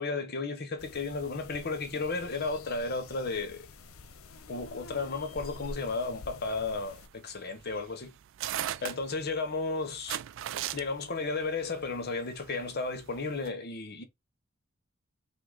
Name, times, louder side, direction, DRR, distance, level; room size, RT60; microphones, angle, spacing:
voice 1, 0.0-3.7 4.5-8.1 8.8-10.2 10.7-14.0, left 3 dB, 50° left, 0.9 m, -33 dB
sound 1, 0.8-7.1, left 2 dB, 85° left, 0.7 m, -48 dB
sound 2, 6.9-13.5, right 12 dB, 65° right, 0.3 m, -38 dB
5.5 x 2.2 x 3.7 m
head